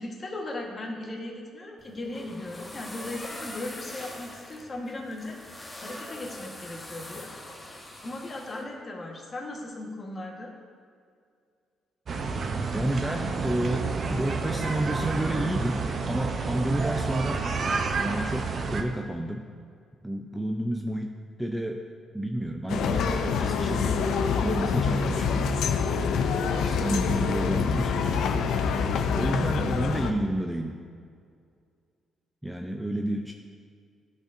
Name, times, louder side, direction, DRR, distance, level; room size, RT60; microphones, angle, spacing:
voice 1, 0.0-5.4 5.8-7.3 8.0-10.5, left 2 dB, 35° left, -1 dB, 1.3 m, -37 dB
sound 1, 1.8-8.6, left 1 dB, 15° left, 1.0 m, -43 dB
sound 2, 12.1-18.8, right 4 dB, 50° right, 0.6 m, -30 dB
voice 2, 12.7-17.4 18.0-19.5 20.0-21.1 21.4-21.8 22.1-24.1 24.4-25.5 26.6-28.5 29.1-30.8 32.4-33.3, right 1 dB, 5° right, 3 dB, 0.4 m, -30 dB
sound 3, 22.7-30.1, left 5 dB, 75° left, 0.4 m, -26 dB
12.0 x 4.1 x 2.6 m, 2.2 s
cardioid pair, 90°, 0 cm